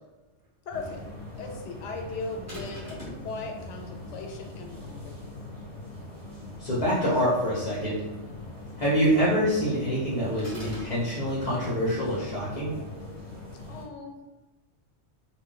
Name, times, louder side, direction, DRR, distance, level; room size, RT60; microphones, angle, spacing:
voice 1, 0.7-1.0 1.4-5.2 13.7-14.2, left 3 dB, 85° left, 3 dB, 0.9 m, -38 dB
sound 1, 0.7-13.8, left 2 dB, 55° right, 1.4 m, -42 dB
sound 2, 2.5-3.3 10.4-11.0, equal, 15° right, 1.0 m, -40 dB
voice 2, 6.6-8.0 8.8-12.7, equal, 40° left, -7 dB, 0.6 m, -26 dB
2.6 x 2.1 x 3.7 m, 1.1 s
omnidirectional pair, 1.2 m